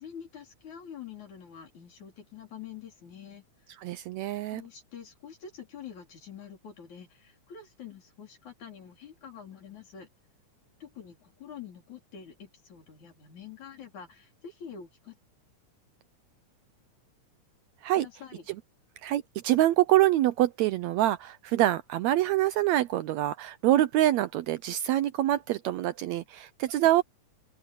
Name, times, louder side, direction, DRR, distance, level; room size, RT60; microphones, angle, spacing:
voice 1, 0.0-3.7 4.5-10.1 10.8-15.2 18.0-18.5, left 8 dB, 65° left, 5.7 m, -46 dB
voice 2, 3.8-4.6 17.8-18.1 19.0-27.0, right 14 dB, 80° right, 1.7 m, -25 dB
open air
omnidirectional pair, 3.6 m